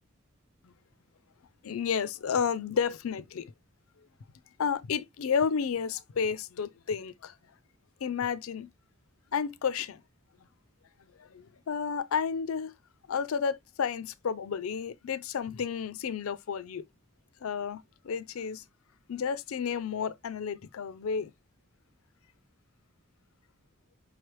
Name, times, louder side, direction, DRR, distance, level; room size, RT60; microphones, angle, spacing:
voice 1, 1.6-3.5 4.6-7.4 8.0-8.7 9.3-10.0 11.2-12.7 13.1-16.8 17.4-18.6 19.1-21.3, left 6 dB, 85° left, 0.4 m, -31 dB
5.2 x 3.2 x 3.0 m
head